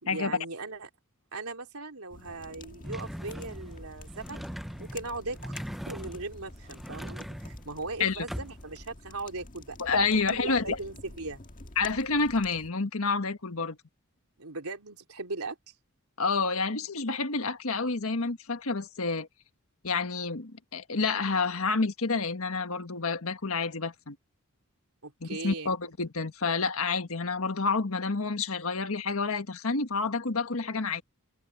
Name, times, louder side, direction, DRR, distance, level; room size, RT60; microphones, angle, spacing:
voice 1, 0.0-0.9 1.3-4.4 4.8-5.6 5.9-9.8 10.1-11.4 14.4-15.6 25.0-25.7, right 3 dB, 80° right, 3.4 m, -38 dB
sound 1, 2.1-12.7, left 2 dB, 40° left, 1.7 m, -49 dB
sound 2, 2.8-8.8, equal, ahead, 0.4 m, -41 dB
voice 2, 9.8-10.8 11.8-13.8 16.2-19.3 19.8-24.2 25.2-31.0, left 4 dB, 70° left, 1.5 m, -29 dB
head